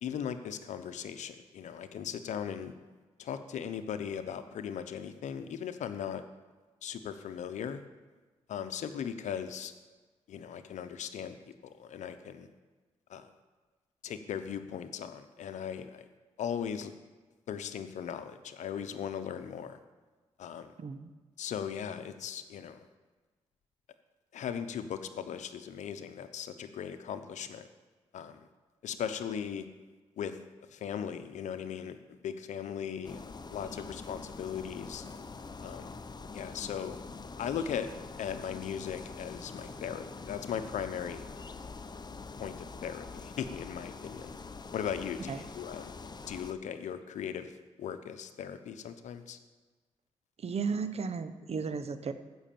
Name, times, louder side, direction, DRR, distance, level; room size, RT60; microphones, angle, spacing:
voice 1, 0.0-2.7 3.2-6.2 6.8-7.8 8.5-9.7 10.3-11.3 11.6-12.5 13.1-13.3 14.0-16.1 16.4-16.9 17.5-19.8 20.4-20.7 21.4-22.8 24.3-27.7 28.1-28.4 28.8-29.7 30.2-30.4 30.7-32.0 32.2-33.2 33.5-35.0 35.6-36.0 36.3-37.0 37.4-37.9 38.2-41.2 42.4-44.3 44.7-46.0 46.3-47.5 47.8-49.4, left 8 dB, 85° left, 10 dB, 0.8 m, -38 dB
voice 2, 20.8-21.1 45.3-45.4 50.4-52.1, right 5 dB, 60° right, 11 dB, 1.0 m, -34 dB
sound 1, 33.0-46.5, left 4 dB, 35° left, 0.8 m, -45 dB
14.5 x 6.3 x 7.0 m, 1.3 s
cardioid pair, 60°, 12 cm